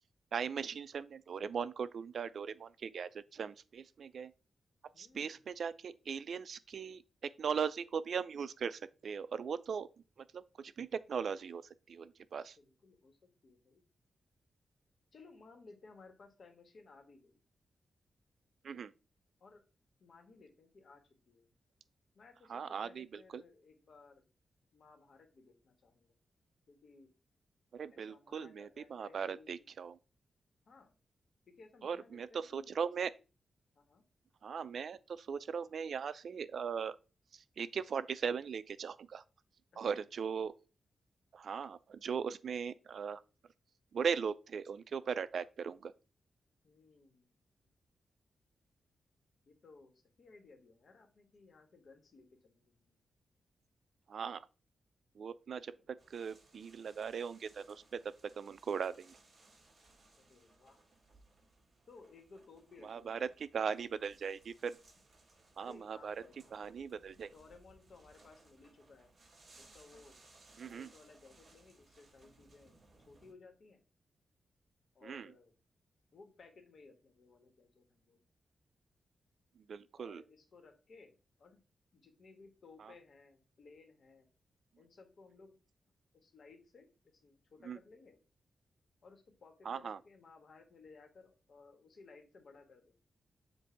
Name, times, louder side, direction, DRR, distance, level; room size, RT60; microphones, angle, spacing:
voice 1, 0.3-4.3 5.0-9.9 10.2-11.6 11.9-12.6 18.6-18.9 22.5-23.4 27.7-30.0 31.8-33.1 34.4-37.0 37.3-39.2 39.8-40.5 41.3-43.2 43.9-45.9 54.1-54.5 55.2-58.0 58.4-59.2 62.8-64.8 65.6-66.2 66.5-67.3 70.6-70.9 75.0-75.3 79.6-80.2 82.8-82.9 87.6-87.8 89.6-90.0, right 6 dB, 65° right, 0.4 m, -39 dB
voice 2, 4.9-5.4 12.6-13.8 15.1-17.4 19.4-19.6 20.0-21.5 22.1-24.2 24.7-26.1 26.7-27.1 27.9-29.7 30.6-31.0 31.5-32.8 33.7-34.0 39.7-40.0 46.6-47.3 49.4-53.0 55.7-55.9 60.2-60.8 61.9-63.3 65.6-66.5 67.3-69.1 69.6-70.2 70.6-73.8 74.9-75.5 76.1-78.2 80.0-81.6 81.9-84.3 84.8-85.6 86.1-86.9 87.1-88.2 89.0-93.0, left 4 dB, 60° left, 1.5 m, -59 dB
sound 1, 56.0-73.3, right 2 dB, 35° right, 2.2 m, -64 dB
7.3 x 2.6 x 5.6 m
wide cardioid pair, 110°, 0 cm